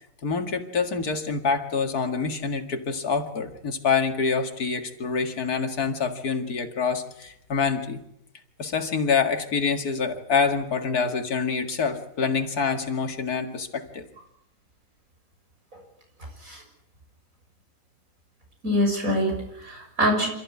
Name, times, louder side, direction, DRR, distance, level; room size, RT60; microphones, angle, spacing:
voice 1, 0.2-8.0 8.6-14.1, left 5 dB, 90° left, 6 dB, 2.6 m, -26 dB
voice 2, 18.6-20.3, equal, 65° right, 2 dB, 7.3 m, -24 dB
27.5 x 14.5 x 9.7 m, 0.80 s
omnidirectional pair, 1.6 m